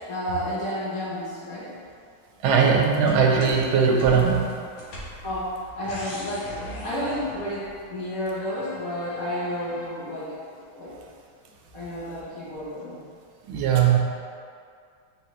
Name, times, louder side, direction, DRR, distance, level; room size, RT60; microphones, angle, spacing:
voice 1, 0.1-1.7 5.2-11.0 11.7-13.0, equal, 55° left, -9 dB, 1.0 m, -31 dB
voice 2, 2.4-4.5 13.5-14.0, right 6 dB, 80° right, 1 dB, 1.4 m, -19 dB
sound 1, 3.1-7.9 8.3-9.9, equal, 75° left, 1.6 m, -41 dB
4.7 x 3.1 x 3.0 m, 2.2 s
omnidirectional pair, 2.2 m